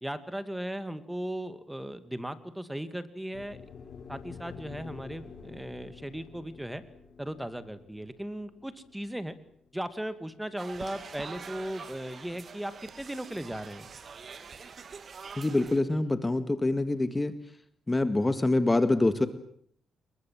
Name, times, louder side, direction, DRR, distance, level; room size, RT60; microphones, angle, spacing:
voice 1, 0.0-3.6 4.1-6.8 7.2-9.4 9.7-13.9, right 1 dB, 5° right, 12 dB, 2.4 m, -37 dB
sound 1, 3.3-11.6, left 6 dB, 55° left, 6.1 m, -49 dB
sound 2, 10.6-15.8, right 5 dB, 50° right, 2.6 m, -45 dB
voice 2, 15.4-17.4 17.9-19.3, left 2 dB, 20° left, 11 dB, 1.9 m, -25 dB
28.5 x 22.5 x 7.7 m, 0.65 s
cardioid pair, 95°, 0 cm